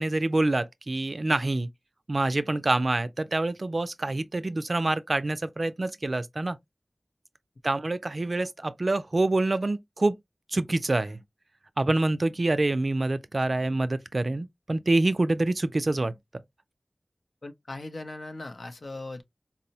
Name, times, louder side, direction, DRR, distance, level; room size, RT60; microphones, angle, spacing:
voice 1, 0.0-1.7 2.1-6.6 7.6-10.2 10.5-11.2 11.8-16.4, right 2 dB, 60° right, 0.4 m, -26 dB
voice 2, 17.4-19.2, left 2 dB, 85° left, 0.5 m, -39 dB
4.0 x 2.0 x 2.7 m
wide cardioid pair, 45°, 0 cm